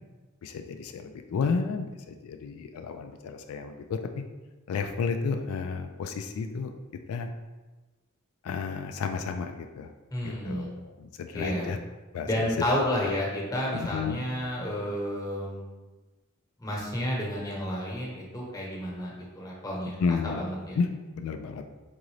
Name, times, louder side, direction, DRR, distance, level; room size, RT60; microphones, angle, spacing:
voice 1, 0.4-4.2 4.7-6.7 7.1-7.3 8.4-9.9 10.2-11.8 12.1-12.8 13.7-14.2 20.0-20.4 20.8-20.9 21.1-21.6, left 5 dB, 85° left, 6 dB, 0.3 m, -32 dB
voice 2, 10.1-10.7 11.3-11.7 12.3-15.7 16.6-20.0 20.2-20.8, left 1 dB, 15° left, -4 dB, 1.0 m, -31 dB
3.8 x 3.7 x 3.2 m, 1.2 s
head